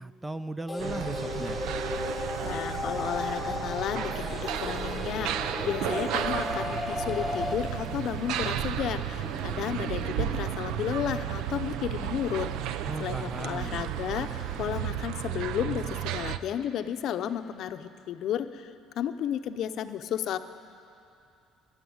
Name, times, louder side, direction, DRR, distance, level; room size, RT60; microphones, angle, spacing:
voice 1, 0.0-1.6 12.8-13.8, right 1 dB, 10° right, 12 dB, 0.3 m, -37 dB
sound 1, 0.7-7.5, left 2 dB, 10° left, 1.0 m, -34 dB
sound 2, 0.8-16.4, right 11 dB, 70° right, 0.5 m, -33 dB
Wind, 1.1-14.8, right 2 dB, 45° right, 2.2 m, -45 dB
voice 2, 2.1-12.5 13.0-20.4, left 10 dB, 55° left, 10 dB, 0.6 m, -33 dB
13.5 x 11.5 x 9.4 m, 2.6 s
cardioid pair, 145°, 0 cm